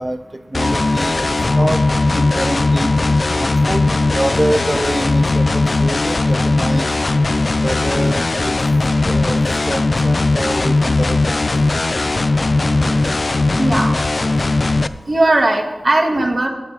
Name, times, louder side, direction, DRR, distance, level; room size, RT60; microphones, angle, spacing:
voice 1, 0.0-1.9 2.1-2.9 3.3-3.9 4.1-6.9 7.6-8.5 9.0-11.5, right 1 dB, 20° right, 9 dB, 0.4 m, -25 dB
sound 1, 0.5-14.9, left 2 dB, 45° left, 0.4 m, -17 dB
sound 2, 0.6-15.6, left 2 dB, 5° right, 1.6 m, -34 dB
voice 2, 13.6-14.0 15.1-16.5, right 2 dB, 45° right, 2 dB, 1.6 m, -17 dB
9.6 x 6.9 x 6.9 m, 1.1 s
wide cardioid pair, 80°, 0 cm